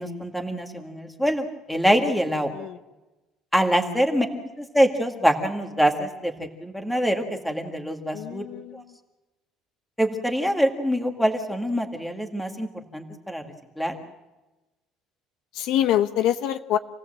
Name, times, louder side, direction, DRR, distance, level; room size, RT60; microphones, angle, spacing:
voice 1, 0.0-2.5 3.5-4.3 4.6-8.4 8.7-8.8 10.0-13.4 13.8-13.9, equal, ahead, 3 dB, 2.0 m, -24 dB
voice 2, 8.1-8.9 15.5-16.8, left 11 dB, 65° left, 9 dB, 1.0 m, -25 dB
27.5 x 17.5 x 7.7 m, 1.1 s
cardioid pair, 165°, 0 cm